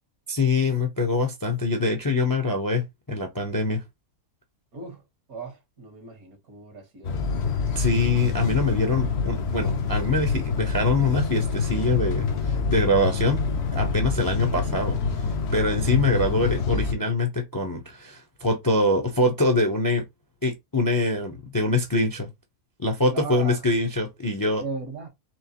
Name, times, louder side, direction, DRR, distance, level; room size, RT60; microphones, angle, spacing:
voice 1, 0.3-3.8 7.7-13.4 13.7-15.0 15.5-20.0 20.4-22.3 22.8-24.6, left 2 dB, 20° left, 0.5 m, -24 dB
voice 2, 4.7-7.4 23.1-23.6 24.6-25.1, right 4 dB, 75° right, 1.9 m, -37 dB
sound 1, 7.0-16.9, left 4 dB, 55° left, 0.9 m, -26 dB
4.5 x 3.0 x 2.9 m
omnidirectional pair, 1.5 m